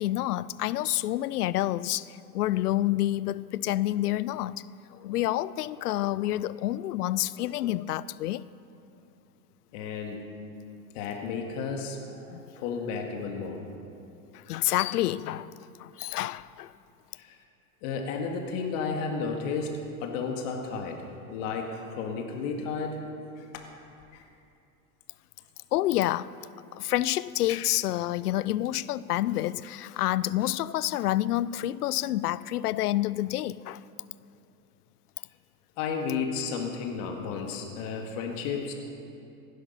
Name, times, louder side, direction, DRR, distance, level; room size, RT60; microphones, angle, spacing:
voice 1, 0.0-4.6 4.9-8.4 12.3-12.4 14.3-15.5 15.8-16.7 25.7-26.4 26.7-33.8, left 14 dB, 85° left, 0.6 m, -28 dB
voice 2, 9.7-10.2 10.9-13.7 17.1-17.4 17.8-23.0 23.4-23.5 24.1-24.3 35.8-38.7, left 5 dB, 55° left, 2.0 m, -33 dB
16.5 x 11.0 x 5.7 m
hypercardioid pair, 115°, 45 cm